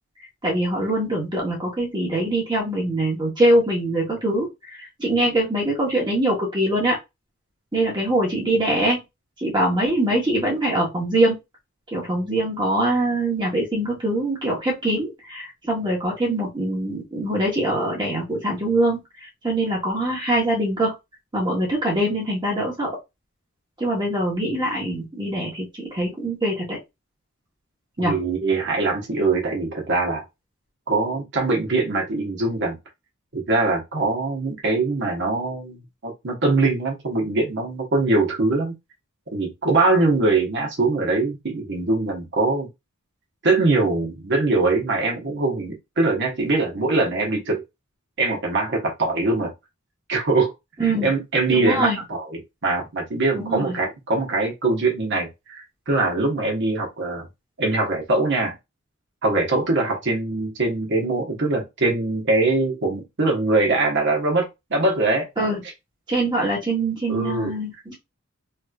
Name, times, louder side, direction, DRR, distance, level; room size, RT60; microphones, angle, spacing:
voice 1, 0.4-4.5 4.8-7.0 7.7-9.0 9.4-11.4 11.9-20.9 21.3-22.9 23.8-26.8 28.0-28.2 50.8-51.1 51.5-52.0 53.3-53.7 65.4-65.6 66.1-67.9, right 1 dB, 20° right, 1.2 m, -23 dB
voice 2, 28.0-30.2 30.9-32.7 33.3-38.7 39.3-42.7 43.4-47.6 48.2-49.5 50.1-50.5 50.8-57.2 57.6-58.6 59.2-65.3 67.1-67.5, right 3 dB, 55° right, 1.2 m, -22 dB
3.3 x 3.0 x 2.4 m
head